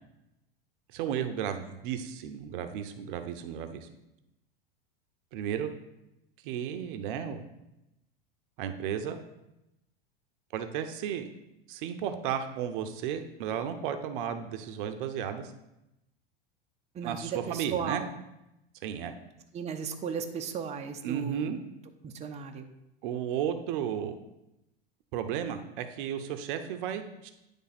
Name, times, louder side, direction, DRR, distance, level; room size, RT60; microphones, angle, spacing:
voice 1, 0.9-3.9 5.3-5.7 6.4-7.4 8.6-9.2 10.5-11.3 11.7-15.5 17.0-18.0 18.8-19.1 21.0-21.6 23.0-24.1 25.1-27.3, right 9 dB, 60° right, 8 dB, 0.8 m, -34 dB
voice 2, 16.9-18.1 19.5-21.4 22.0-22.7, right 7 dB, 20° right, 4 dB, 0.7 m, -35 dB
9.7 x 3.4 x 4.2 m, 0.90 s
hypercardioid pair, 105°, 29 cm